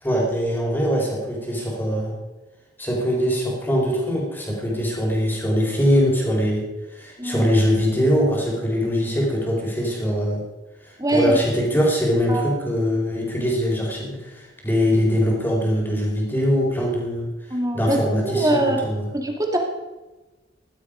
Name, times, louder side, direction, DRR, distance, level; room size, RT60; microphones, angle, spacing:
voice 1, 0.0-2.1 2.8-6.6 6.9-10.4 10.8-17.3 17.7-19.0, equal, 10° left, -2 dB, 4.4 m, -22 dB
voice 2, 7.2-7.5 11.0-11.4 12.3-12.5 17.5-18.0 18.2-18.8 19.1-19.6, right 1 dB, 20° right, 2 dB, 2.3 m, -22 dB
16.0 x 12.0 x 5.1 m, 1.1 s
head